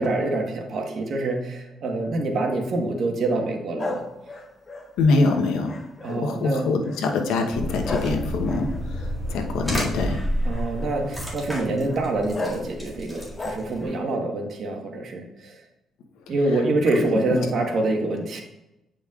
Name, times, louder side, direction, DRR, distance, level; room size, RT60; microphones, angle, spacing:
voice 1, 0.0-4.0 6.0-6.7 10.4-15.5 16.3-18.4, right 2 dB, 60° right, 3 dB, 1.2 m, -26 dB
sound 1, 3.8-6.4 6.8-7.2 7.8-10.1 10.5-11.0 11.9-12.0 12.3-12.7 13.1-14.0, left 2 dB, 30° left, 1.0 m, -35 dB
voice 2, 5.0-5.7 6.1-8.7 9.3-10.2, left 3 dB, 90° left, 3 dB, 0.9 m, -23 dB
sound 2, 7.5-13.8, equal, 5° right, 2.1 m, -30 dB
8.9 x 5.1 x 2.4 m, 0.94 s
cardioid pair, 90°, 0 cm